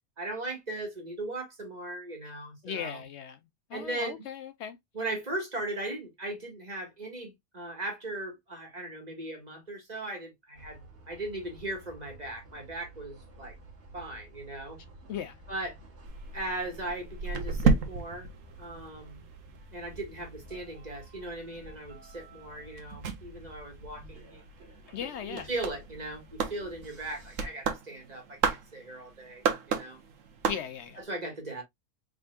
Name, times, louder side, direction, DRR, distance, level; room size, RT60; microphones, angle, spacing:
voice 1, 0.2-3.0 3.7-4.2 4.9-13.6 13.9-14.8 15.5-15.8 16.3-18.3 18.6-19.2 19.7-24.4 25.0-30.0 31.0-31.6, right 2 dB, 35° right, 1.7 m, -38 dB
voice 2, 2.6-3.4 3.7-4.8 15.1-15.3 24.9-25.5 30.4-31.0, left 8 dB, 65° left, 0.8 m, -37 dB
sound 1, 10.6-27.5, right 2 dB, 60° right, 1.5 m, -51 dB
sound 2, 16.0-19.5 19.8-31.0, right 5 dB, 85° right, 1.3 m, -33 dB
4.9 x 3.7 x 2.3 m
omnidirectional pair, 1.3 m